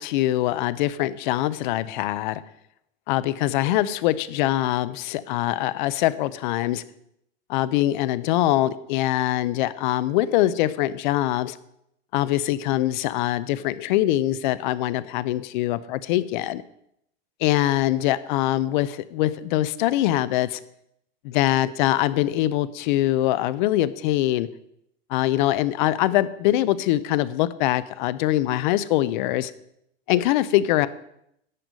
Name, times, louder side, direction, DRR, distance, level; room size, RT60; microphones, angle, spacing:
voice 1, 0.0-2.4 3.1-6.8 7.5-11.6 12.1-16.6 17.4-20.6 21.2-24.5 25.1-29.5 30.1-30.9, left 14 dB, 50° left, 17 dB, 0.6 m, -23 dB
11.0 x 7.8 x 5.2 m, 0.76 s
supercardioid pair, 160°, 30 cm